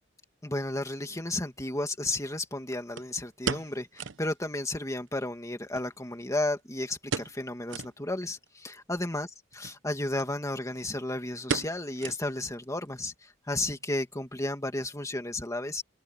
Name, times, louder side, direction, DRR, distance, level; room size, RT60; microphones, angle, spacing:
voice 1, 0.4-9.3 9.8-15.8, left 2 dB, 15° left, 2.4 m, -33 dB
sound 1, 0.9-1.0 3.0-4.3 4.6-4.7 5.0-5.1 5.7-6.6 7.1-7.4 7.7-8.0 8.5-8.6 9.5-9.8 10.2-10.3 10.6-10.9 11.5-12.6 12.9-13.0 13.5-13.9 14.2-14.3, right 5 dB, 75° right, 1.0 m, -35 dB
head